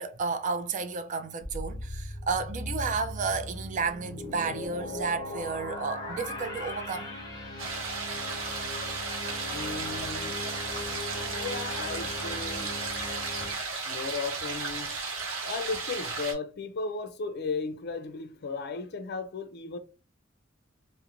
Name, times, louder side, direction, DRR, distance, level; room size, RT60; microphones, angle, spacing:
voice 1, 0.0-7.1, right 4 dB, 40° right, 0.3 m, -32 dB
sound 1, 1.4-13.5, left 1 dB, 20° left, 0.7 m, -38 dB
sound 2, 7.6-16.3, right 4 dB, 90° right, 0.9 m, -34 dB
voice 2, 9.5-10.4 11.1-12.8 13.9-14.9 15.4-19.8, left 4 dB, 55° left, 0.4 m, -35 dB
2.4 x 2.1 x 2.9 m
head